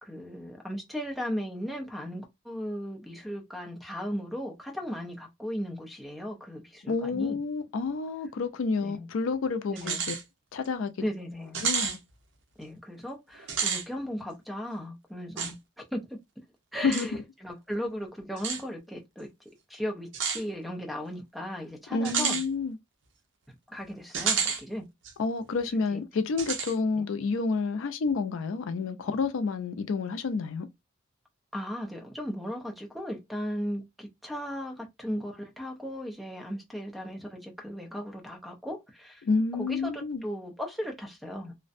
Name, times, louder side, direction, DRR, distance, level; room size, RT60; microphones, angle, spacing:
voice 1, 0.0-7.4 8.8-9.1 9.7-10.1 11.0-11.7 12.6-15.6 15.9-16.2 16.7-19.3 19.7-22.4 23.7-24.8 25.9-26.0 27.0-27.1 31.5-39.2 39.5-41.6, equal, ahead, 0.4 m, -36 dB
voice 2, 6.9-10.2 10.5-10.9 11.6-12.0 16.8-17.1 21.9-22.8 25.2-30.7 39.3-40.2, left 4 dB, 80° left, 0.4 m, -29 dB
sound 1, 9.8-10.2 10.6-10.7 11.5-12.0 13.4-13.8 15.4-15.5 16.9-17.1 18.4-18.6 20.1-20.4 22.0-22.4 24.1-24.6 25.0-25.1 26.4-26.7, right 6 dB, 70° right, 0.6 m, -29 dB
2.5 x 2.0 x 2.5 m
head